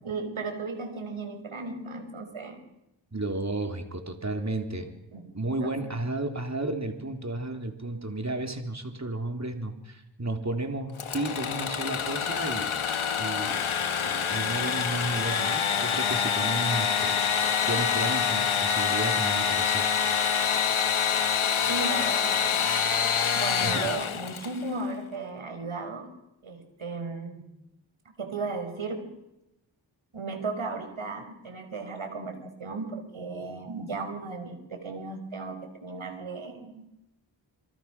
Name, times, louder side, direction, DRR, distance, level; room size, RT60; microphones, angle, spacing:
voice 1, 0.0-2.6 5.1-5.9 21.7-22.7 23.3-26.1 26.4-27.5 28.2-29.1 30.1-36.9, right 3 dB, 80° right, 7 dB, 5.0 m, -35 dB
voice 2, 3.1-4.9 5.3-12.7 13.2-13.6 14.0-17.2 17.6-20.1 23.6-23.9, right 2 dB, 35° right, 4 dB, 3.7 m, -33 dB
Engine / Sawing, 11.0-24.7, left 7 dB, 90° left, 1.5 m, -26 dB
28.5 x 24.0 x 6.2 m, 0.90 s
cardioid pair, 50°, 47 cm